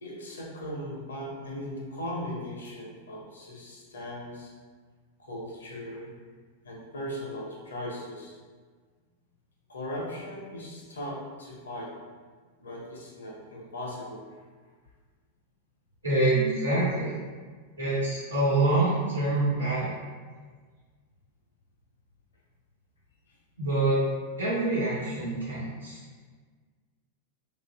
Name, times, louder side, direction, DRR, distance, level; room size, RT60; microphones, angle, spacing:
voice 1, 0.0-4.5 5.2-6.1 6.6-8.3 9.7-11.9 12.6-14.4 23.3-23.4, equal, 70° left, -2 dB, 0.6 m, -38 dB
voice 2, 16.0-17.1 17.8-19.9 23.6-24.0 24.4-26.0, right 2 dB, 80° right, -9 dB, 1.0 m, -26 dB
2.5 x 2.4 x 2.2 m, 1.5 s
figure-of-eight pair, 90°, 0 cm